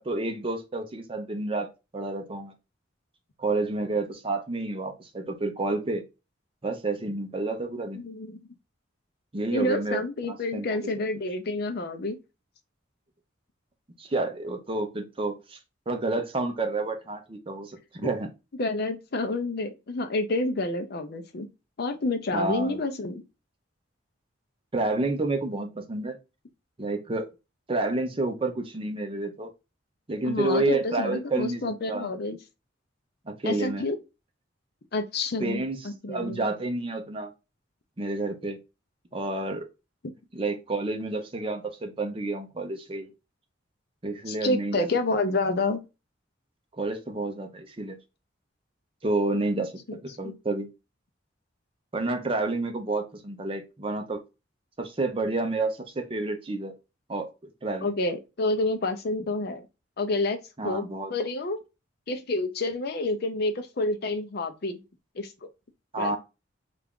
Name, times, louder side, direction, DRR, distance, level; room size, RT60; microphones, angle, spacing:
voice 1, 0.0-1.7 1.9-2.5 3.4-6.0 6.6-8.0 9.3-10.7 14.0-15.6 15.9-18.3 22.3-22.8 24.7-26.2 26.8-27.3 27.7-29.5 30.1-31.6 31.9-32.1 33.3-33.8 35.4-35.8 36.1-37.3 38.0-38.6 39.1-39.7 40.3-43.1 44.0-44.9 46.8-48.0 49.0-49.7 50.0-50.7 51.9-54.2 54.8-56.7 57.1-57.3 57.6-58.0 60.6-61.1 65.9-66.2, right 2 dB, 30° right, 0.6 m, -29 dB
voice 2, 7.9-8.4 9.5-12.2 18.0-18.1 18.6-21.5 21.8-23.2 30.3-32.4 33.4-34.0 34.9-36.4 44.3-45.8 50.2-50.3 57.8-59.6 60.0-61.6 62.1-64.8 65.2-65.3 66.0-66.2, left 2 dB, 55° left, 0.5 m, -29 dB
3.4 x 2.4 x 3.5 m
head